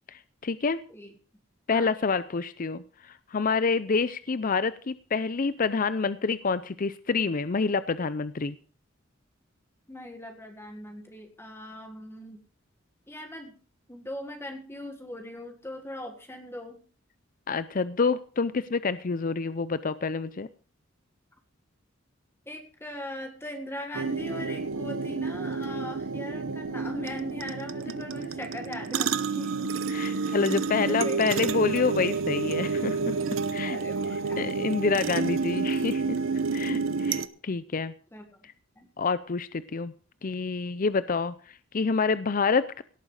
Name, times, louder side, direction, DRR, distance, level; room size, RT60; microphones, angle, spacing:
voice 1, 0.1-0.8 1.7-8.6 17.5-20.5 29.9-33.1 33.5-33.8 34.4-36.2 36.5-37.9 39.0-39.9 40.2-42.8, left 4 dB, 40° left, 15 dB, 0.5 m, -27 dB
voice 2, 9.9-12.4 13.1-13.6 13.9-16.8 22.5-29.6 30.1-30.4 30.8-31.2 33.2-33.3 33.7-34.5 38.1-38.4 38.8-38.9, left 1 dB, 10° left, 4 dB, 1.8 m, -40 dB
sound 1, 23.9-37.3, right 4 dB, 80° right, 0.8 m, -30 dB
17.5 x 8.9 x 4.9 m, 0.40 s
head